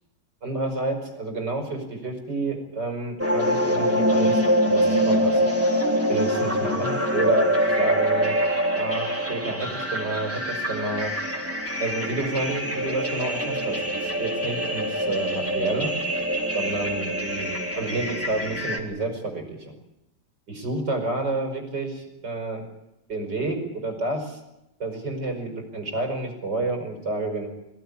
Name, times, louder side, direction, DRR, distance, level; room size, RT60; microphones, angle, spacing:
voice 1, 0.4-4.4 4.7-5.5 6.1-8.4 8.7-11.1 11.8-16.0 16.5-19.7 20.5-22.6 23.1-24.4 24.8-27.5, right 2 dB, 90° right, 4 dB, 5.8 m, -29 dB
sound 1, 3.2-18.8, equal, 10° right, 3.3 m, -24 dB
23.0 x 17.5 x 9.9 m, 0.89 s
omnidirectional pair, 1.8 m